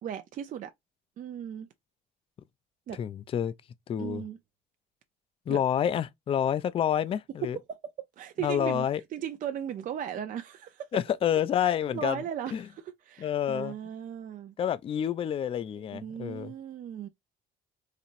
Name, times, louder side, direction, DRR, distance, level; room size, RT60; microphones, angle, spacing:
voice 1, 0.0-0.7 1.2-1.7 2.9-3.0 4.0-4.4 5.5-5.6 7.7-7.8 8.2-8.9 9.1-10.9 11.6-14.5 15.8-17.1, right 9 dB, 50° right, 0.5 m, -37 dB
voice 2, 3.0-3.5 3.9-4.2 5.5-7.6 8.4-9.0 10.9-12.2 12.5-12.6 13.2-13.8 14.6-16.5, left 9 dB, 35° left, 0.4 m, -28 dB
4.1 x 2.9 x 2.5 m
cardioid pair, 110°, 17 cm